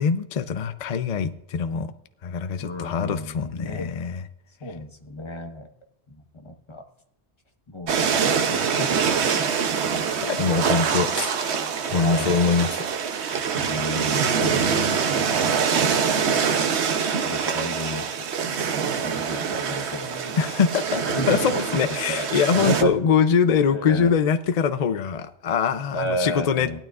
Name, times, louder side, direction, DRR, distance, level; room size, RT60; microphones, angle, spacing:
voice 1, 0.0-1.9 2.2-4.2 10.2-11.6 11.9-12.8 14.4-15.5 20.4-26.8, left 6 dB, 45° left, 0.6 m, -23 dB
voice 2, 2.6-4.0 4.6-5.7 6.1-6.8 7.7-9.5 9.8-10.2 12.0-12.4 13.7-15.1 17.2-18.3 19.0-20.3 21.0-21.8 22.1-22.3 22.5-22.9 23.7-24.1 25.9-26.8, equal, 25° left, 1.2 m, -33 dB
sound 1, 7.9-22.8, right 6 dB, 80° right, 1.1 m, -24 dB
18.0 x 12.0 x 2.4 m
omnidirectional pair, 1.1 m